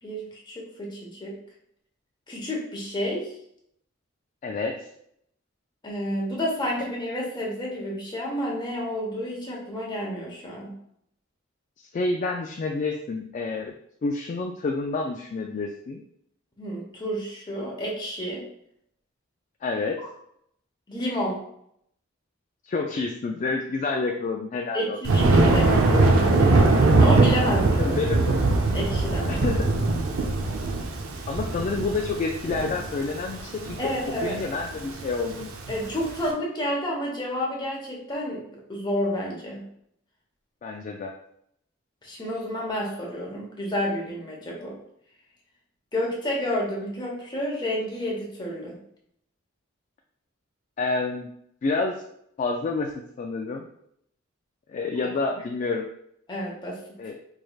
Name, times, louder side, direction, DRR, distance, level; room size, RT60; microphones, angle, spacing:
voice 1, 0.0-1.3 2.3-3.3 5.8-10.7 16.6-18.4 20.9-21.4 24.7-27.9 28.7-29.4 33.8-34.4 35.7-39.6 42.0-44.8 45.9-48.8 56.3-56.8, equal, 20° left, -3 dB, 1.0 m, -30 dB
voice 2, 4.4-4.9 11.8-13.7 14.0-16.0 19.6-20.0 22.6-25.0 27.8-28.4 29.3-29.7 31.3-33.8 34.2-35.5 40.6-41.1 50.8-51.3 51.6-52.0 52.4-52.9 53.2-53.7 54.7-55.9 57.0-57.1, left 3 dB, 40° left, 2 dB, 0.3 m, -28 dB
Thunder, 25.0-36.2, right 2 dB, 85° right, 0.6 m, -21 dB
4.6 x 3.2 x 2.3 m, 0.73 s
head